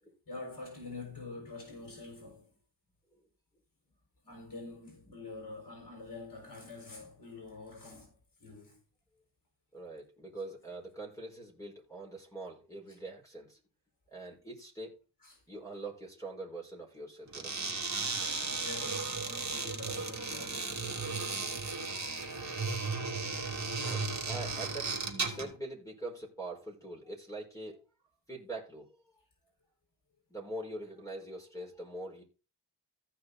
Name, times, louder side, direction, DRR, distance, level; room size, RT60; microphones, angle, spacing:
voice 1, 0.3-2.5 4.2-8.1 8.4-8.8 15.2-15.4 18.2-21.1 21.6-21.8 22.3-22.5 23.8-24.0, left 3 dB, 50° left, 5.5 m, -46 dB
voice 2, 9.7-13.6 14.1-14.9 15.5-17.6 23.8-25.0 25.2-27.8 28.3-28.9 30.3-32.2, right 2 dB, 10° left, 5.1 m, -43 dB
sound 1, 17.3-25.6, right 4 dB, 40° right, 2.5 m, -35 dB
15.0 x 6.0 x 4.0 m
wide cardioid pair, 80°, 43 cm